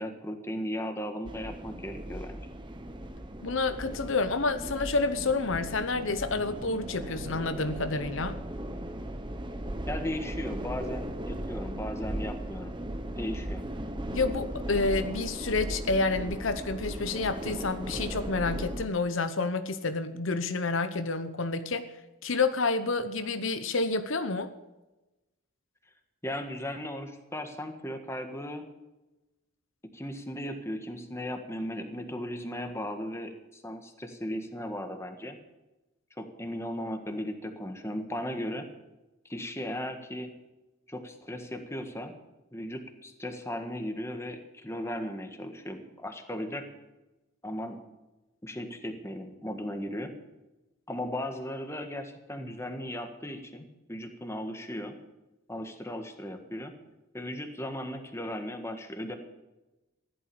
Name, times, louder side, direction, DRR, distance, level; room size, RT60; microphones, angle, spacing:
voice 1, 0.0-2.5 9.9-12.7 13.2-13.6 26.2-28.6 29.9-35.4 36.2-38.7 39.3-40.3 40.9-42.1 42.5-46.6 47.4-47.8 48.4-50.1 50.9-55.0 55.5-56.7 57.1-59.2, left 1 dB, 15° left, 6 dB, 1.6 m, -36 dB
sound 1, 1.3-18.9, right 1 dB, 20° right, 1.1 m, -37 dB
voice 2, 3.4-8.4 14.1-21.9 22.2-24.5, left 3 dB, 70° left, 10 dB, 0.9 m, -29 dB
15.0 x 11.5 x 7.0 m, 1.0 s
head